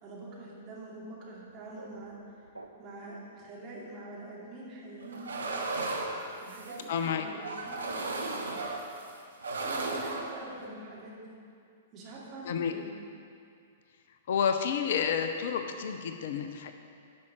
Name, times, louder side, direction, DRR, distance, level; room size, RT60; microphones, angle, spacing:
voice 1, 0.0-2.2 2.8-5.7 6.4-8.4 9.5-11.2 11.9-12.9, right 1 dB, 35° right, -5 dB, 2.6 m, -45 dB
sound 1, 1.3-3.2, right 2 dB, 85° right, 0.6 m, -51 dB
sound 2, 5.0-6.9 7.4-9.1 9.4-10.3, right 3 dB, 70° right, 1.0 m, -35 dB
voice 2, 6.9-7.3 12.4-12.7 14.3-16.7, left 7 dB, 55° left, 7 dB, 0.6 m, -30 dB
10.5 x 5.7 x 6.2 m, 2.4 s
figure-of-eight pair, 105°, 0 cm